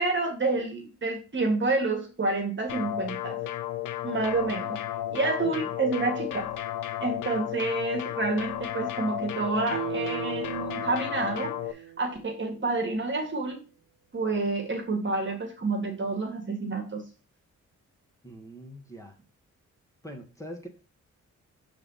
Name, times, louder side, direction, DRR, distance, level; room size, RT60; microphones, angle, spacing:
voice 1, 0.0-3.4 4.0-4.8 5.1-6.5 7.0-13.6 14.1-17.0, right 3 dB, 40° right, 3 dB, 1.7 m, -29 dB
sound 1, 2.7-11.7, left 13 dB, 85° left, 0.6 m, -33 dB
Guitar, 9.7-13.0 13.3-13.4, right 16 dB, 85° right, 0.6 m, -39 dB
voice 2, 18.2-19.2 20.0-20.7, equal, 10° left, 2 dB, 1.5 m, -43 dB
5.6 x 3.6 x 5.5 m, 0.35 s
cardioid pair, 70°, 31 cm